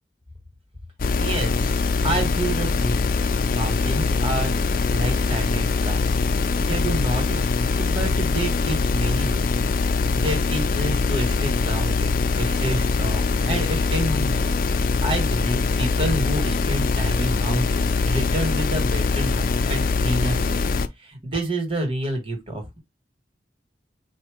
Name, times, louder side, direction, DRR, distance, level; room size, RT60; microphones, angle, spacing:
sound 1, 1.0-20.9, left 4 dB, 50° left, 0.4 m, -22 dB
voice 1, 1.1-3.1 3.5-4.5 4.9-6.2 6.6-14.5 14.7-20.7 21.0-22.8, right 1 dB, 30° right, 1.5 m, -29 dB
4.2 x 2.7 x 4.8 m
head